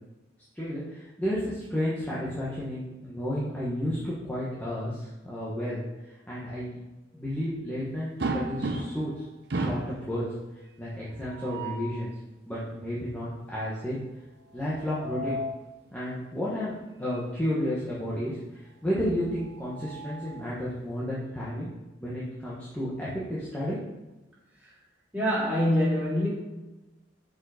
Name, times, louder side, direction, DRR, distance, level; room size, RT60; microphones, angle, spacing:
voice 1, 0.5-6.8 7.1-9.2 9.5-10.3 10.8-12.1 12.4-14.0 14.5-15.4 15.9-16.7 17.0-21.7 22.0-23.8, equal, 10° left, -8 dB, 1.3 m, -32 dB
sound 1, 8.2-9.1 9.5-10.0 11.2-12.0 14.6-15.7 17.1-17.3 17.6-17.7 19.3-20.5, right 2 dB, 55° right, 0.7 m, -34 dB
voice 2, 25.1-26.3, equal, 10° right, -8 dB, 2.7 m, -24 dB
6.5 x 5.5 x 5.0 m, 1.1 s
head